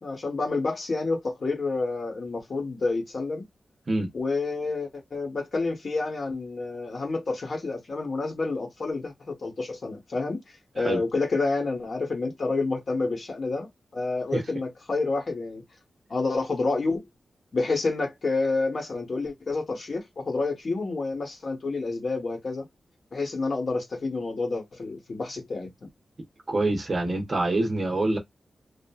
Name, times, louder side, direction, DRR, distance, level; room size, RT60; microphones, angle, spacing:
voice 1, 0.0-3.4 4.1-10.4 10.7-15.6 16.1-17.0 17.5-22.7 23.1-25.9, left 3 dB, 45° left, 0.9 m, -29 dB
voice 2, 26.5-28.2, right 2 dB, 35° right, 0.7 m, -25 dB
2.8 x 2.4 x 2.2 m
wide cardioid pair, 170°, 0 cm